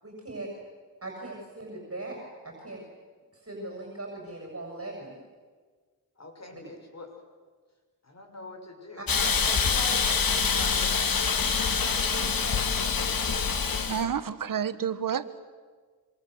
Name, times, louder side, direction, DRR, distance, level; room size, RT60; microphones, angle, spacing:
voice 1, 0.0-0.5 1.0-2.2 2.4-2.8 3.3-5.2 6.5-6.6 9.0-9.1, right 2 dB, 40° right, 7.6 m, -39 dB
voice 2, 6.2-7.1 8.0-10.2 10.5-11.1 11.7-13.1, left 2 dB, 45° left, 6.6 m, -42 dB
Hiss, 9.1-14.0, left 5 dB, 65° left, 2.4 m, -25 dB
voice 3, 13.9-15.4, right 8 dB, 60° right, 1.4 m, -29 dB
27.0 x 26.0 x 8.0 m
cardioid pair, 75°, 37 cm